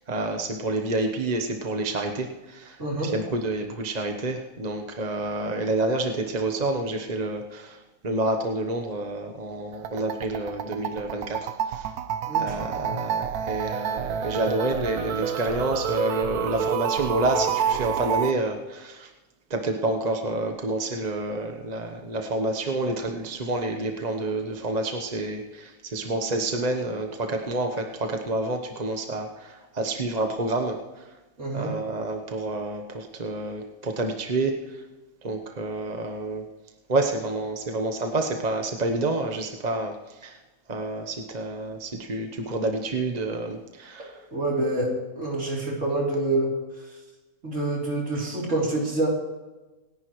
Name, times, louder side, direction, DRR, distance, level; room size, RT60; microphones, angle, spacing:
voice 1, 0.1-2.8 3.0-7.8 8.0-11.9 12.4-19.1 19.5-30.8 31.5-34.6 35.2-36.4 36.9-39.9 40.2-40.4 40.7-44.1, right 2 dB, 30° right, 3 dB, 1.1 m, -28 dB
voice 2, 2.8-3.1 12.3-12.6 12.8-13.0 31.4-31.7 44.3-46.5 47.4-49.1, right 2 dB, 55° right, -3 dB, 3.8 m, -27 dB
sound 1, 9.7-18.3, right 8 dB, 85° right, 1.2 m, -29 dB
27.0 x 11.0 x 3.2 m, 1.1 s
omnidirectional pair, 1.5 m